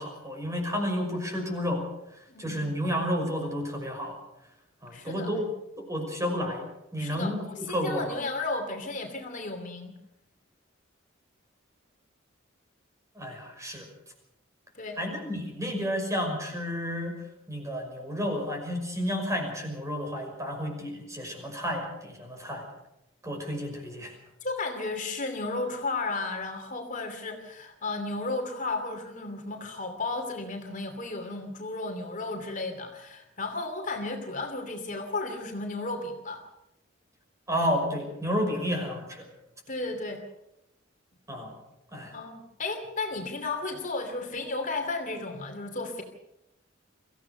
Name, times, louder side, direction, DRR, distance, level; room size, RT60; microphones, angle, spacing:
voice 1, 0.0-1.8 2.4-4.2 4.8-5.5 5.8-6.7 6.9-8.0 13.2-13.9 15.0-17.1 17.5-22.6 23.2-24.1 37.5-39.3 41.3-41.5 41.9-42.2, equal, 15° right, 3 dB, 5.8 m, -31 dB
voice 2, 2.3-2.7 4.9-5.3 7.0-10.0 14.8-15.0 24.4-36.4 39.7-40.2 42.1-46.0, left 3 dB, 40° left, 4 dB, 2.8 m, -34 dB
24.5 x 16.0 x 6.8 m, 0.87 s
head